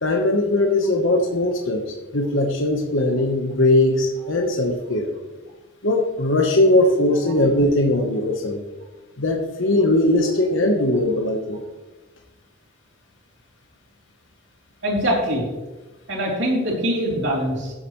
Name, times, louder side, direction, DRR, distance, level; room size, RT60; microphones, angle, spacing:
voice 1, 0.0-5.1 5.8-8.6 9.2-11.6, left 1 dB, 70° left, 2 dB, 1.1 m, -20 dB
voice 2, 14.8-15.4 16.1-17.7, equal, 60° right, -3 dB, 3.3 m, -23 dB
14.5 x 7.9 x 3.2 m, 1.2 s
head